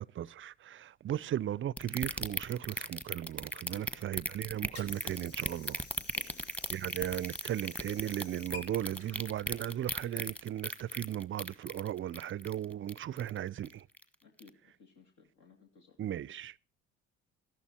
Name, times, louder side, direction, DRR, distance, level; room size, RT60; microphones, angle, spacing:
voice 1, 0.0-5.9 6.7-13.9 16.0-16.6, right 11 dB, 40° right, 0.5 m, -36 dB
sound 1, 1.8-13.4 13.7-14.0 14.4-14.5, equal, 5° left, 1.4 m, -36 dB
Water / Sink (filling or washing), 4.2-10.3, left 4 dB, 85° left, 2.7 m, -52 dB
voice 2, 6.0-6.5 14.2-16.0, left 4 dB, 65° left, 2.6 m, -59 dB
13.5 x 11.5 x 4.3 m
supercardioid pair, 75°, 32 cm